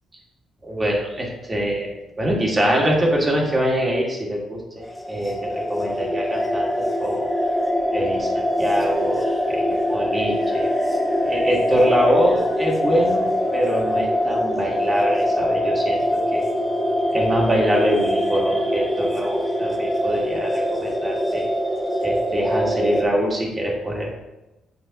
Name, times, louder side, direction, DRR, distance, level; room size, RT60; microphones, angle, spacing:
voice 1, 0.6-1.9 2.2-7.3 7.9-10.7 11.2-16.5 17.1-21.4 22.0-24.1, equal, 25° right, -2 dB, 2.0 m, -24 dB
sound 1, 4.8-23.0, equal, 10° left, 1.2 m, -23 dB
8.5 x 4.8 x 3.0 m, 1.0 s
cardioid pair, 90°, 0 cm